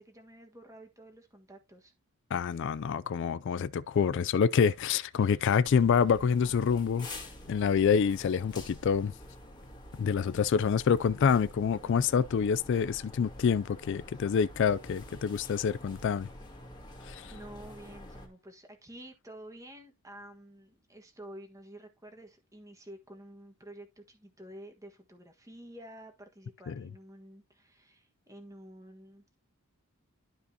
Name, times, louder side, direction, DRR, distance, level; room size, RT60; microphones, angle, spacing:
voice 1, 0.0-1.9 17.3-29.2, right 1 dB, 15° right, 1.5 m, -50 dB
voice 2, 2.3-7.1 7.5-9.1 10.0-16.3 17.0-17.3 26.7-26.8, left 6 dB, 55° left, 0.3 m, -27 dB
sound 1, 5.6-18.3, left 1 dB, 20° left, 2.1 m, -48 dB
12.0 x 5.3 x 2.8 m
head